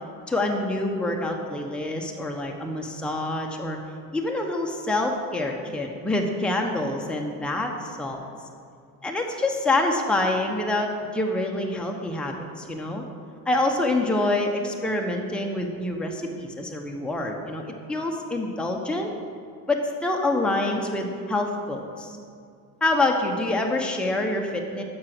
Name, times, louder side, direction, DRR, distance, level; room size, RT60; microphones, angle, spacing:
voice 1, 0.3-3.8 4.1-8.2 9.0-13.0 13.5-19.1 19.7-22.2 22.8-24.8, left 2 dB, ahead, 1 dB, 1.0 m, -26 dB
7.4 x 6.0 x 6.0 m, 2.3 s
supercardioid pair, 75°, 44 cm